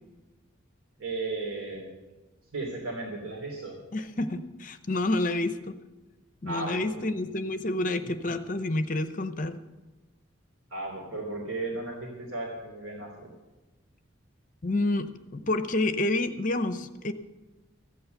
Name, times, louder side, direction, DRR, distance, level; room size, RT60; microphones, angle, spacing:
voice 1, 1.0-1.9 2.5-3.8 6.4-7.0 8.0-8.1 10.7-13.3, right 2 dB, 85° right, -2 dB, 3.2 m, -35 dB
voice 2, 3.9-5.7 6.4-9.6 14.6-17.1, left 2 dB, 40° left, 10 dB, 0.7 m, -29 dB
15.0 x 8.6 x 8.0 m, 1.1 s
head